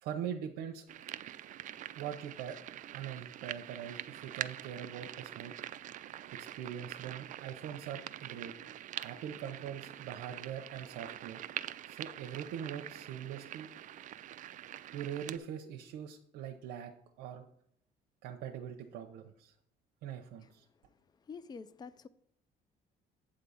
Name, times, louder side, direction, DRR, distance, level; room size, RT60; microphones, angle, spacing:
voice 1, 0.0-0.8 2.0-2.6 2.9-5.5 6.4-8.5 9.0-11.4 11.9-13.7 14.9-16.9 17.2-17.4 18.2-19.5 20.0-20.6, right 9 dB, 90° right, 0.7 m, -42 dB
sound 1, 0.9-15.4, right 12 dB, 50° right, 0.4 m, -45 dB
voice 2, 21.3-22.1, left 5 dB, 25° left, 0.4 m, -47 dB
8.5 x 3.8 x 6.9 m
cardioid pair, 110°, 17 cm